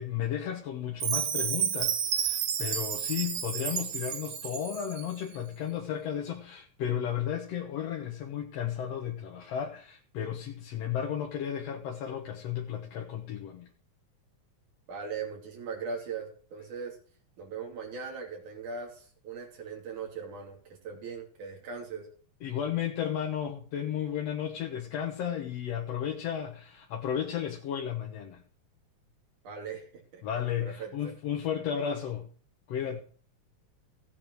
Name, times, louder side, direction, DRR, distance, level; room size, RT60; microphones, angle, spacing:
voice 1, 0.0-13.7 22.4-28.4 30.2-32.3 32.7-33.0, left 9 dB, 65° left, 2 dB, 2.1 m, -34 dB
Chime, 1.0-5.1, right 8 dB, 60° right, 1.3 m, -31 dB
voice 2, 14.9-17.0 17.4-22.1 29.4-29.9 30.1-30.2 30.6-31.1, right 5 dB, 90° right, 0 dB, 4.2 m, -39 dB
15.5 x 8.8 x 4.6 m, 0.43 s
omnidirectional pair, 3.4 m